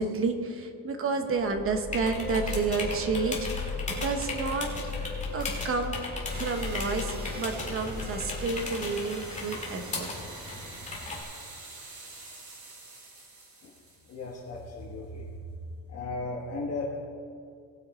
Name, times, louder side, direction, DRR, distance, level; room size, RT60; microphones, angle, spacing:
voice 1, 0.0-3.5 4.0-4.7 5.3-6.0 6.3-10.1, right 4 dB, 40° right, 6 dB, 1.1 m, -30 dB
sound 1, 1.3-9.2, left 3 dB, 5° left, 2.1 m, -37 dB
sound 2, 1.9-11.2, left 3 dB, 20° left, 2.0 m, -38 dB
sound 3, 6.3-14.6, right 1 dB, 60° right, 3.2 m, -44 dB
voice 2, 14.1-15.3 15.9-17.0, left 3 dB, 50° left, -2 dB, 1.3 m, -35 dB
18.5 x 6.6 x 4.3 m, 2.3 s
cardioid pair, 160°, 33 cm